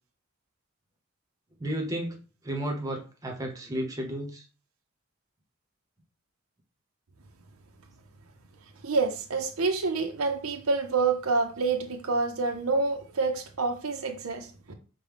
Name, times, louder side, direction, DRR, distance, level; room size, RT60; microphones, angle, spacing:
voice 1, 1.6-4.4, right 1 dB, 15° right, 0.8 m, -33 dB
voice 2, 8.8-14.7, right 4 dB, 90° right, 0.7 m, -27 dB
5.2 x 2.2 x 3.3 m
head